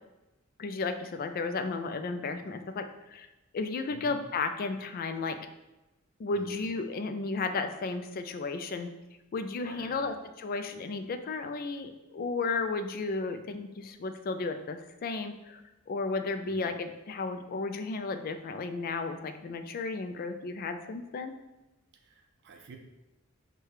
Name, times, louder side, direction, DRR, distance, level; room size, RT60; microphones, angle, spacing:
voice 1, 0.6-3.3 3.5-5.4 6.2-8.9 9.3-21.3, left 3 dB, 45° left, 8 dB, 0.3 m, -34 dB
voice 2, 6.3-6.7 9.6-10.1 16.5-16.8 21.9-22.8, right 3 dB, 55° right, 4 dB, 0.5 m, -50 dB
4.6 x 2.2 x 4.8 m, 1.0 s
head